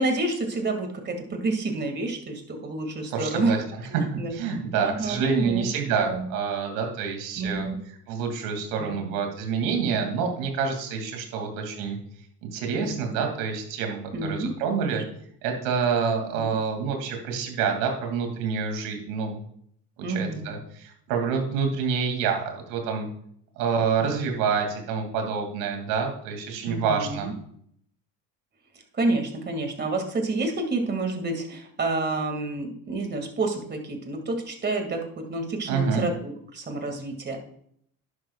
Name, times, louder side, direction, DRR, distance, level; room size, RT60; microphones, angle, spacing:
voice 1, 0.0-4.4 4.8-5.7 6.0-6.3 7.4-7.8 8.8-9.1 9.8-10.0 12.7-13.1 14.1-14.5 14.9-15.0 16.3-16.5 20.0-20.5 24.0-24.4 26.7-27.3 28.9-37.4, right 2 dB, 30° right, 4 dB, 2.3 m, -29 dB
voice 2, 3.1-3.6 3.9-7.7 8.1-12.0 12.4-15.0 15.4-19.4 20.1-23.1 23.6-27.3 35.7-36.1, right 6 dB, 80° right, 4 dB, 2.6 m, -27 dB
11.0 x 11.0 x 2.4 m, 0.68 s
supercardioid pair, 100°, 36 cm